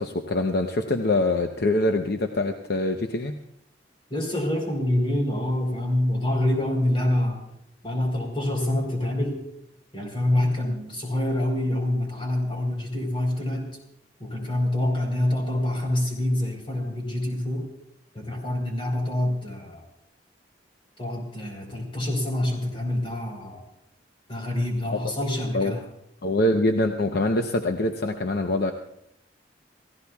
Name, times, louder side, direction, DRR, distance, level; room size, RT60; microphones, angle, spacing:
voice 1, 0.0-3.3 24.9-25.1 25.5-25.7 26.2-28.7, left 2 dB, 60° left, 5 dB, 0.8 m, -24 dB
voice 2, 4.1-7.4 7.8-9.4 9.9-13.7 14.2-17.6 18.1-19.8 21.0-23.6 24.3-25.8, left 1 dB, 30° left, 1 dB, 3.9 m, -26 dB
29.0 x 15.5 x 2.3 m, 0.80 s
head